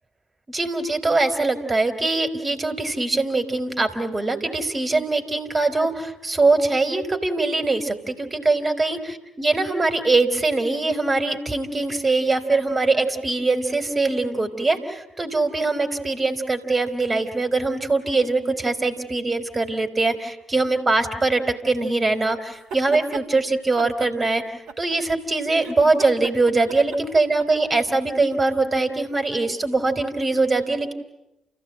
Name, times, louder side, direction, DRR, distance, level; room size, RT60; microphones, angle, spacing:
voice 1, 0.5-24.4 24.8-30.9, right 3 dB, 30° right, 8 dB, 3.6 m, -22 dB
sound 1, 22.5-23.3 23.8-25.2 25.5-27.7, right 5 dB, 65° right, 2.0 m, -37 dB
29.5 x 15.5 x 9.0 m, 0.93 s
hypercardioid pair, 45°, 0 cm